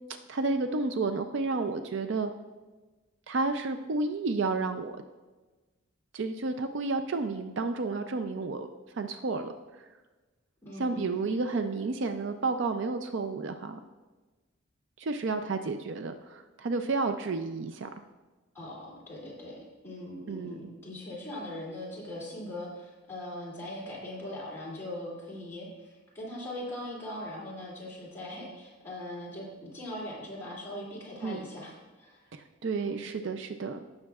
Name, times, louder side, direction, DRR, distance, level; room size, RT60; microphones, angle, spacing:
voice 1, 0.3-2.3 3.3-4.9 6.1-8.7 8.9-9.5 10.8-13.8 15.0-17.9 20.3-20.5 31.2-31.5 32.3-33.8, right 3 dB, 60° right, 8 dB, 0.4 m, -31 dB
voice 2, 10.6-11.3 18.5-32.2 32.8-33.0, left 1 dB, 10° left, -7 dB, 2.7 m, -40 dB
15.5 x 6.4 x 2.4 m, 1.2 s
head